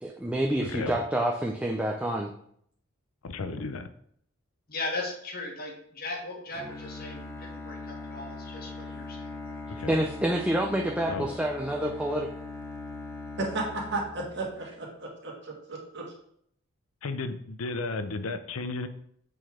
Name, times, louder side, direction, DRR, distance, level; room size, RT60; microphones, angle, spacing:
voice 1, 0.0-2.3 9.9-12.3, right 1 dB, 5° right, 0 dB, 0.5 m, -28 dB
voice 2, 0.6-1.0 3.2-3.9 9.7-10.0 11.1-11.3 17.0-18.9, left 3 dB, 85° left, 10 dB, 0.6 m, -34 dB
voice 3, 4.7-9.6, left 2 dB, 45° left, 2 dB, 1.4 m, -38 dB
Bowed string instrument, 6.5-14.7, left 2 dB, 15° left, 0.8 m, -41 dB
voice 4, 13.4-16.1, right 2 dB, 55° right, -1 dB, 1.9 m, -34 dB
7.6 x 3.9 x 5.0 m, 0.68 s
head